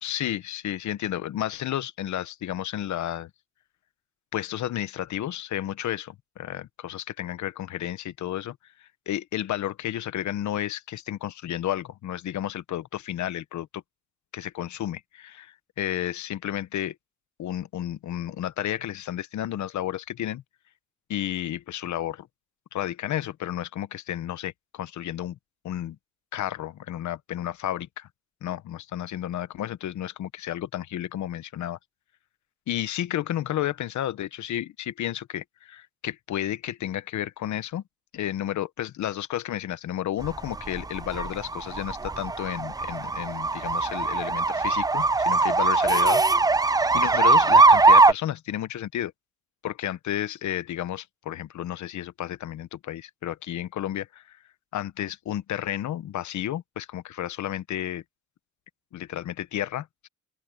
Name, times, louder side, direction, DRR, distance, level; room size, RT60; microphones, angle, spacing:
voice 1, 0.0-3.3 4.3-13.8 14.3-16.9 17.4-20.4 21.1-22.3 22.7-25.4 25.6-26.0 26.3-28.1 28.4-31.8 32.7-37.8 38.1-49.1 49.6-54.4 54.7-58.0 58.9-60.1, left 12 dB, 70° left, 1.2 m, -32 dB
ambulance street traffic city Poland, 40.2-48.1, right 3 dB, 15° right, 0.5 m, -20 dB
open air
cardioid pair, 90°, 30 cm